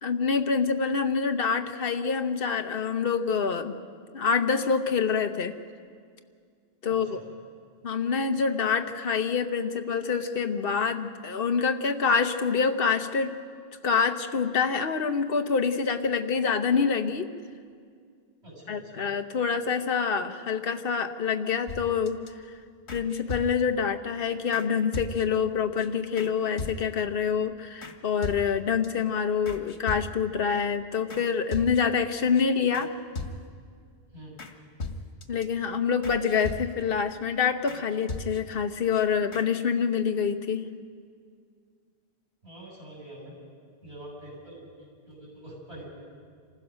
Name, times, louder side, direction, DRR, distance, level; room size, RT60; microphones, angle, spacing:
voice 1, 0.0-3.8 4.1-5.5 6.8-7.2 7.8-13.3 13.8-17.3 18.7-22.2 22.9-32.9 35.3-40.7, left 6 dB, 60° left, 7 dB, 1.2 m, -26 dB
voice 2, 6.9-7.2 18.4-19.1 34.1-34.4 42.4-43.4 43.8-45.9, right 1 dB, 80° right, -4 dB, 8.3 m, -45 dB
sound 1, 21.7-22.3 22.9-23.8 24.5-24.7 24.9-25.5 25.8-25.9 26.2-26.3 26.6-27.1 27.8-28.0 28.2-28.9 29.5-30.4 31.1-31.2 31.5-32.0 32.3-32.4 32.7-32.9 33.2-33.7 34.4-34.5 34.8-35.4 36.0-37.0 37.7-37.8 38.1-38.6 38.9-39.0 39.3-39.5, left 3 dB, 85° left, 1.7 m, -38 dB
27.0 x 15.5 x 6.4 m, 2.1 s
omnidirectional pair, 1.1 m